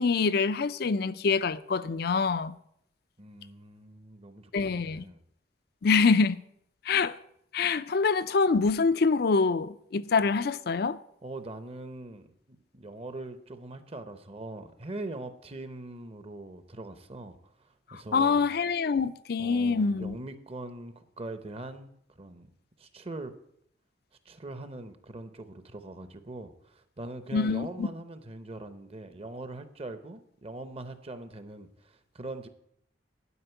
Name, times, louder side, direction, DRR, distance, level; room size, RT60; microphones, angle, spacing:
voice 1, 0.0-2.6 4.5-5.1 5.8-6.4 6.9-7.2 7.5-11.0 18.1-20.2 27.3-27.9, left 4 dB, 55° left, 0.5 m, -25 dB
voice 2, 3.2-5.2 11.2-18.5 19.4-22.5 22.8-23.3 24.2-32.5, right 2 dB, 30° right, 0.8 m, -42 dB
11.0 x 5.2 x 8.1 m
head